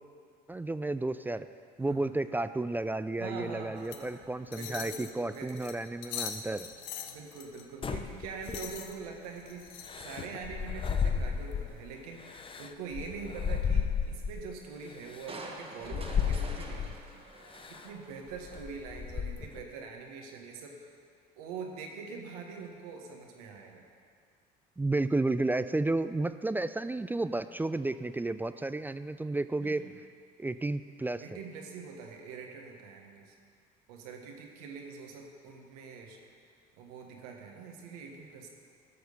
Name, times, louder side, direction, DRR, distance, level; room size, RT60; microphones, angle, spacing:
voice 1, 0.5-1.5 1.8-6.7 24.8-29.8 30.4-31.2, right 2 dB, 10° right, 12 dB, 0.3 m, -32 dB
voice 2, 1.8-2.1 3.2-4.3 4.6-5.6 7.1-17.0 17.7-20.9 21.4-23.8 29.6-29.9 31.2-33.3 33.9-36.2 36.8-38.5, right 5 dB, 90° right, 2 dB, 1.4 m, -44 dB
sound 1, 3.8-12.6, left 8 dB, 80° left, 0.8 m, -45 dB
sound 2, 7.8-9.0 9.9-11.8 12.2-14.5 15.1-15.3 15.8-17.0 17.5-17.9 18.3-19.6, left 6 dB, 30° left, 0.7 m, -33 dB
Crushing, 15.3-18.7 19.1-19.2, right 2 dB, 30° right, 1.4 m, -46 dB
12.5 x 6.4 x 5.4 m, 2.2 s
supercardioid pair, 80°, 19 cm